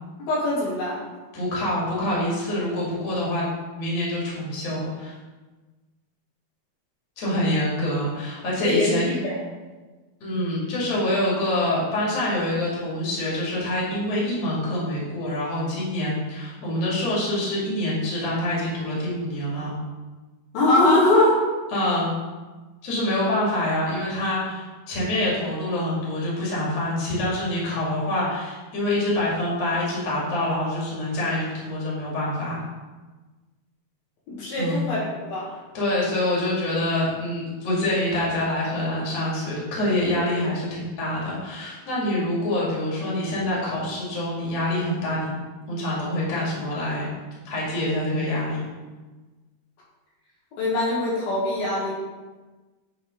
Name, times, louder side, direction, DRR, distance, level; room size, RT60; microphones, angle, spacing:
voice 1, 0.2-1.0 8.6-9.4 20.5-21.4 34.3-35.5 50.5-51.9, left 2 dB, 70° left, -7 dB, 3.6 m, -22 dB
voice 2, 1.3-3.5 3.8-5.1 7.2-9.1 10.2-19.8 21.7-22.1 22.8-32.6 34.6-34.8 35.7-45.3 45.7-47.1 47.5-48.6, left 1 dB, 45° left, -6 dB, 3.2 m, -26 dB
9.2 x 4.2 x 5.2 m, 1.2 s
omnidirectional pair, 4.5 m